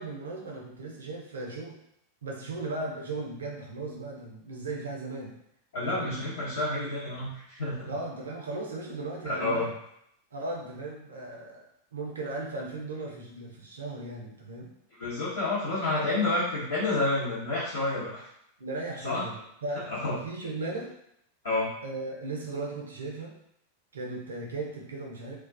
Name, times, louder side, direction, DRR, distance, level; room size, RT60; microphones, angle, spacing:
voice 1, 0.0-1.8 2.2-5.4 5.9-6.2 7.9-9.7 10.3-11.7 11.9-14.7 18.6-19.8 20.1-20.9 21.8-23.4 23.9-25.4, right 2 dB, 70° right, -1 dB, 0.6 m, -37 dB
voice 2, 5.7-7.9 9.2-9.7 15.0-18.3 19.0-19.3 19.9-20.1 21.4-21.7, left 2 dB, 65° left, -12 dB, 0.8 m, -29 dB
2.3 x 2.2 x 2.5 m, 0.75 s
figure-of-eight pair, 90°, 0 cm